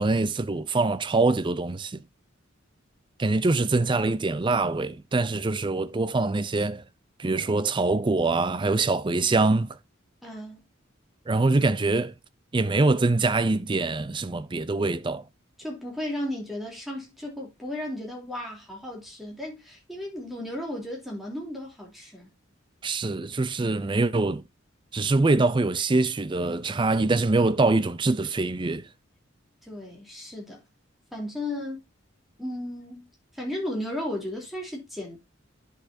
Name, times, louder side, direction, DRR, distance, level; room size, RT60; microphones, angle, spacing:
voice 1, 0.0-2.0 3.2-6.8 7.2-9.8 11.3-12.1 12.5-15.2 22.8-24.4 24.9-28.9, right 3 dB, 25° right, 0.5 m, -24 dB
voice 2, 10.2-10.6 15.6-22.3 29.6-30.6 31.1-31.8 32.4-33.1 33.3-35.2, left 1 dB, ahead, 3.2 m, -35 dB
10.5 x 6.6 x 2.7 m
head